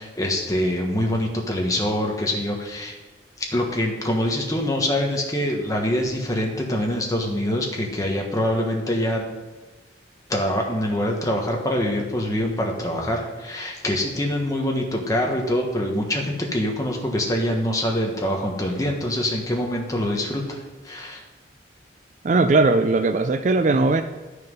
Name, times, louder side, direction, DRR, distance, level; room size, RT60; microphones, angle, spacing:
voice 1, 0.0-3.0 3.4-9.2 10.3-21.2, left 1 dB, 20° left, 1 dB, 1.3 m, -24 dB
voice 2, 22.2-24.0, right 3 dB, 40° right, 9 dB, 0.4 m, -19 dB
11.5 x 6.7 x 5.4 m, 1.2 s
head